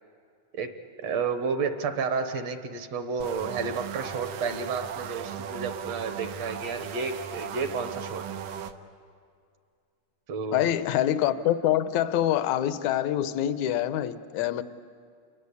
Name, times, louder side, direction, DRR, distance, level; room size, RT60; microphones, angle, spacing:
voice 1, 1.0-8.2 10.3-10.7, right 5 dB, 65° right, 2.2 m, -31 dB
sound 1, 3.2-8.7, right 8 dB, 80° right, 2.3 m, -37 dB
voice 2, 10.5-14.6, left 11 dB, 75° left, 2.0 m, -25 dB
28.5 x 22.0 x 8.4 m
omnidirectional pair, 3.5 m